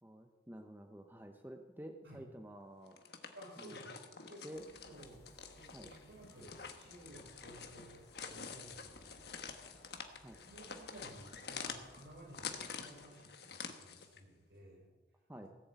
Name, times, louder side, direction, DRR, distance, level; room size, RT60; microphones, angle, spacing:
voice 1, 0.0-3.0 3.6-3.8 4.4-4.7 5.7-5.9 10.2-10.4 15.3-15.5, equal, 10° right, 5 dB, 0.7 m, -50 dB
sound 1, 2.9-14.2, left 6 dB, 60° left, 1.3 m, -48 dB
voice 2, 3.3-4.0 4.3-5.2 5.5-9.6 10.4-14.9, right 1 dB, 70° right, -1 dB, 5.2 m, -55 dB
sound 2, 4.5-13.0, equal, 20° left, 3.3 m, -63 dB
17.0 x 7.7 x 8.1 m, 1.2 s
head